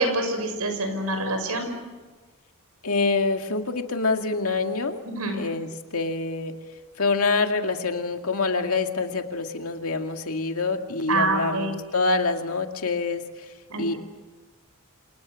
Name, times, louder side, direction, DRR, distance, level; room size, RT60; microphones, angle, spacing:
voice 1, 0.0-1.7 5.0-5.4 11.1-11.7 13.7-14.0, right 2 dB, 90° right, 6 dB, 6.3 m, -26 dB
voice 2, 2.8-5.0 5.3-6.5 7.0-13.2 13.8-13.9, left 3 dB, 75° left, 5 dB, 2.2 m, -26 dB
29.0 x 28.0 x 6.4 m, 1.3 s
head